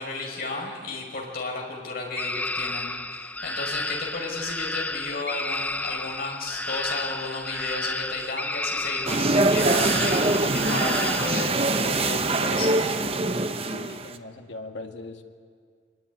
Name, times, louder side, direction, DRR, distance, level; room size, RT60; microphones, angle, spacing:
voice 1, 0.0-12.8, left 3 dB, 55° left, 0 dB, 5.6 m, -33 dB
sound 1, 2.2-11.4, left 2 dB, 10° left, 0.6 m, -32 dB
sound 2, 9.1-14.2, right 2 dB, 30° right, 0.9 m, -23 dB
voice 2, 13.7-15.2, left 2 dB, 80° left, 3 dB, 2.1 m, -39 dB
24.0 x 21.5 x 9.7 m, 2.1 s
head